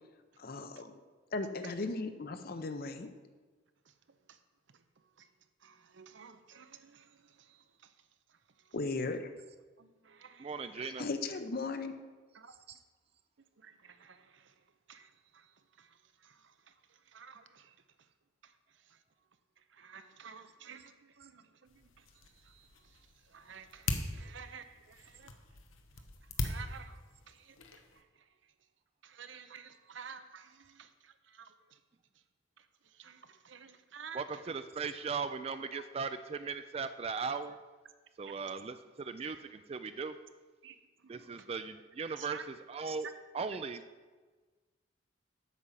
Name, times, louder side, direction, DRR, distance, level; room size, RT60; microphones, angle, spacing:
voice 1, 0.4-0.9 1.3-3.1 8.7-9.3 10.8-11.9, left 3 dB, 50° left, 0.7 m, -37 dB
voice 2, 5.6-7.9 9.8-10.7 12.3-12.5 13.6-14.5 14.9-15.5 15.8-16.0 16.2-16.7 17.1-17.7 18.4-18.5 18.9-19.0 19.7-22.0 22.4-22.7 23.3-25.4 26.4-27.6 28.0-28.1 29.0-31.5 32.6-32.7 32.9-34.2 38.3-38.4 40.6-40.8 41.0-41.5 42.2-42.5, right 6 dB, 65° right, 0.7 m, -52 dB
voice 3, 10.4-11.1 12.7-12.8 34.1-37.6 38.2-40.2 41.1-43.1 43.3-43.9, right 5 dB, 30° right, 0.3 m, -38 dB
sound 1, 21.7-28.0, left 2 dB, 85° left, 0.9 m, -41 dB
8.3 x 5.3 x 7.3 m
head